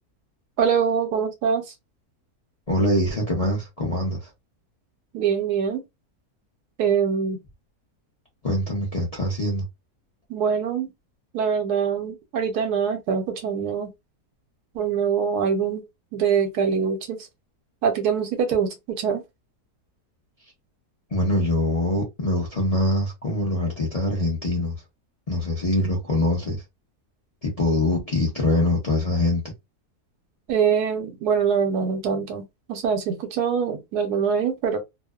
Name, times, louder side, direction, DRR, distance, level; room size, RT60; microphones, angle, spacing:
voice 1, 0.6-1.7 5.1-5.8 6.8-7.4 10.3-10.9 11.3-13.9 14.7-15.8 16.1-17.3 17.8-19.2 30.5-32.4 32.7-34.8, right 6 dB, 85° right, 1.2 m, -24 dB
voice 2, 2.7-4.3 8.4-9.6 21.1-24.8 25.3-26.6 27.4-29.4, left 1 dB, 40° left, 0.5 m, -23 dB
2.7 x 2.0 x 2.3 m
omnidirectional pair, 1.7 m